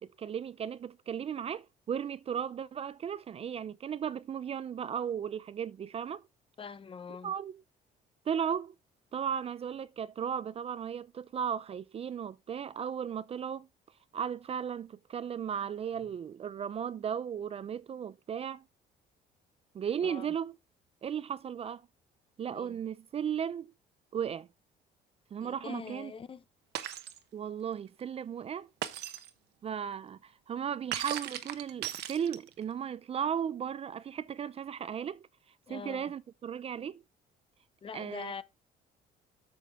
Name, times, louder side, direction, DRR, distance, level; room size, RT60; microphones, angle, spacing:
voice 1, 0.0-6.2 7.2-7.6 8.3-8.7 9.1-13.7 14.1-18.6 19.7-20.6 21.0-21.8 22.4-23.7 24.1-24.5 25.3-26.1 27.3-28.7 29.6-35.3 35.7-37.0 37.9-38.3, right 8 dB, 35° right, 0.5 m, -36 dB
voice 2, 6.6-7.3 20.0-20.3 22.5-22.8 25.4-26.4 35.7-36.1 37.8-38.4, left 6 dB, 30° left, 0.8 m, -43 dB
Shatter, 26.8-27.2 28.8-29.3 30.9-32.6, right 12 dB, 75° right, 1.1 m, -37 dB
8.3 x 6.0 x 3.5 m
cardioid pair, 110°, 17 cm